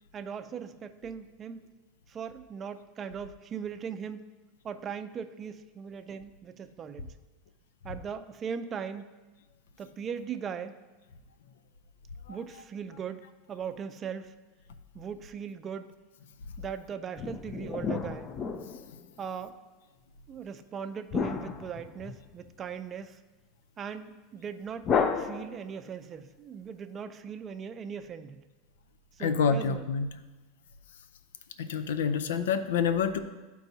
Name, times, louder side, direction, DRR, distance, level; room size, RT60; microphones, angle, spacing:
voice 1, 0.1-1.6 2.1-4.3 4.6-7.1 7.8-9.0 9.8-10.8 12.3-13.2 13.5-14.3 14.9-15.9 16.6-18.3 19.2-19.5 20.3-23.2 23.8-24.9 25.1-28.4 29.2-29.8, right 7 dB, 30° right, 9 dB, 0.5 m, -39 dB
sound 1, 17.2-19.2 21.1-22.5 24.8-25.9, left 6 dB, 30° left, 0.5 m, -32 dB
voice 2, 29.2-30.1 31.6-33.2, left 6 dB, 85° left, 10 dB, 0.5 m, -27 dB
12.0 x 4.6 x 2.7 m, 1.2 s
supercardioid pair, 125°, 0 cm